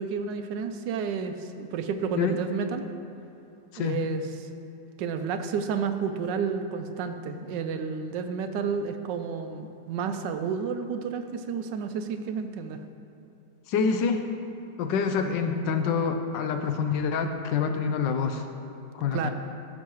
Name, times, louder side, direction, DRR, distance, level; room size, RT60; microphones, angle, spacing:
voice 1, 0.0-2.9 3.8-4.5 5.0-12.8 19.1-19.3, right 6 dB, 80° right, 8 dB, 1.2 m, -31 dB
voice 2, 13.7-14.3 14.8-18.4 18.9-19.3, left 5 dB, 85° left, 7 dB, 1.3 m, -26 dB
14.0 x 6.4 x 3.0 m, 2.7 s
omnidirectional pair, 1.9 m